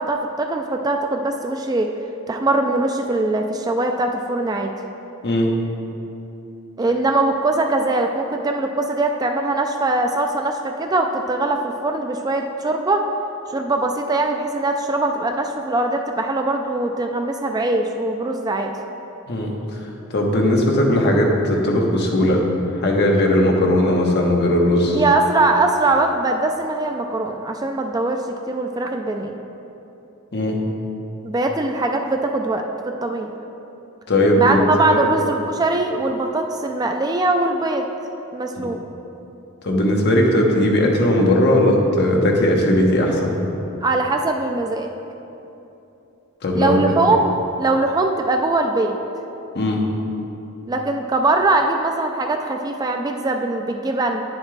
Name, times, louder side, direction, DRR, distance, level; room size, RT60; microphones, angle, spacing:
voice 1, 0.0-1.9 2.3-4.7 6.8-13.0 13.5-18.7 24.9-29.3 31.2-33.3 34.4-37.9 38.3-38.8 43.8-44.9 46.5-49.0 50.7-54.2, right 2 dB, 20° right, 4 dB, 0.3 m, -21 dB
voice 2, 5.2-5.6 19.3-19.5 20.1-22.4 22.8-25.0 30.3-30.6 34.1-35.0 38.6-38.7 39.6-43.3 46.4-46.8 49.5-49.8, left 1 dB, 50° left, 0 dB, 1.0 m, -18 dB
9.6 x 7.3 x 3.3 m, 2.9 s
head